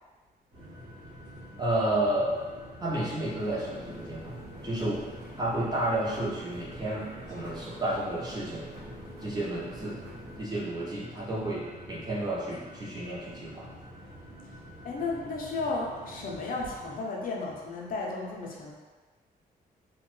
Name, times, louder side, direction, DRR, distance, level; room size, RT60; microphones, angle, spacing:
sound 1, 0.5-17.0, equal, 50° right, 1.0 m, -47 dB
voice 1, 1.6-2.3 2.8-5.0 5.4-8.7 9.2-10.0 10.4-13.7, right 1 dB, 25° right, -5 dB, 0.5 m, -31 dB
sound 2, 3.2-10.4, right 1 dB, 75° right, 0.7 m, -47 dB
voice 2, 14.8-18.7, left 3 dB, 60° left, -2 dB, 0.5 m, -33 dB
2.9 x 2.1 x 3.0 m, 1.3 s
wide cardioid pair, 175°, 17 cm